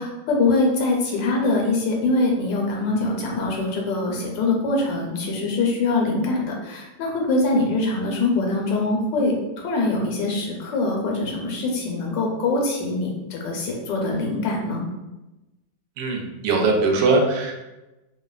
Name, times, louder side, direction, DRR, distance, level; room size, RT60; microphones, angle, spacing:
voice 1, 0.0-9.4 9.6-14.8, left 2 dB, 85° left, 0 dB, 1.3 m, -23 dB
voice 2, 16.0-17.5, right 3 dB, 85° right, 0 dB, 1.3 m, -20 dB
3.1 x 2.2 x 2.3 m, 1.0 s
omnidirectional pair, 1.9 m